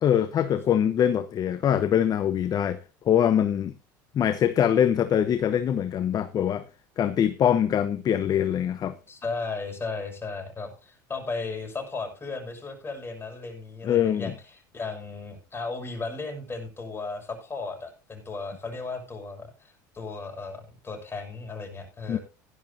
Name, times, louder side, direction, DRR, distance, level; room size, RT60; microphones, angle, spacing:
voice 1, 0.0-2.8 3.1-3.7 4.1-6.6 7.0-9.0 13.8-14.3 22.1-22.2, left 9 dB, 40° left, 0.9 m, -23 dB
voice 2, 9.1-22.2, left 3 dB, 20° left, 6.4 m, -35 dB
16.0 x 11.5 x 2.7 m
hypercardioid pair, 90°, 10 cm